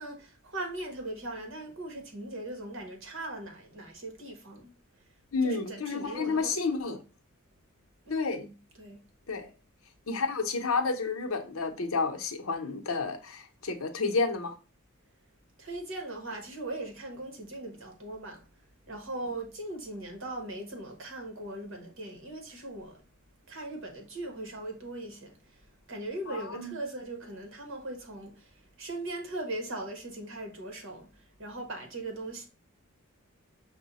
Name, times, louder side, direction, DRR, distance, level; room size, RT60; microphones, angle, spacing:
voice 1, 0.0-4.7 5.4-7.0 8.1-9.0 15.6-18.4 18.9-23.0 23.5-32.4, right 2 dB, 65° right, 1.3 m, -39 dB
voice 2, 5.3-7.0 8.1-8.5 9.3-9.5 10.1-14.5 26.3-26.7, left 4 dB, 70° left, 0.8 m, -30 dB
5.4 x 2.2 x 4.0 m
head